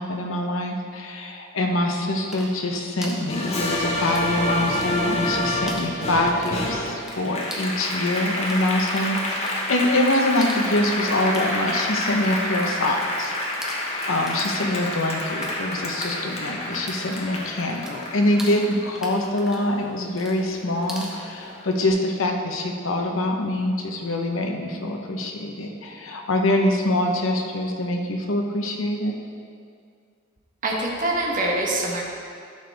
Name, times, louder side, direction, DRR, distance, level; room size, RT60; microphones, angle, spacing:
voice 1, 0.0-29.1, left 1 dB, 80° left, 2 dB, 1.0 m, -25 dB
sound 1, 2.1-4.3 4.6-5.3 5.6-15.5 15.8-21.2, equal, 5° right, 1.1 m, -41 dB
Applause, 3.3-20.1 20.5-21.7, left 1 dB, 35° left, 1.3 m, -28 dB
voice 2, 30.6-32.0, right 2 dB, 40° right, -2 dB, 1.3 m, -24 dB
11.5 x 6.9 x 3.5 m, 2.2 s
head